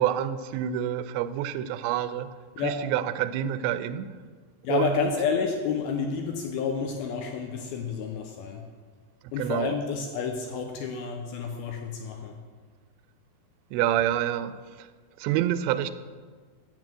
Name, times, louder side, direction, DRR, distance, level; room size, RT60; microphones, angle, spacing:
voice 1, 0.0-2.3 2.6-4.2 4.7-5.1 9.2-9.7 13.7-14.9 15.2-15.9, right 11 dB, 90° right, 13 dB, 2.8 m, -28 dB
voice 2, 4.6-8.6 9.3-12.4, left 6 dB, 80° left, 3 dB, 2.3 m, -30 dB
7.5 x 7.5 x 7.5 m, 1.5 s
omnidirectional pair, 5.0 m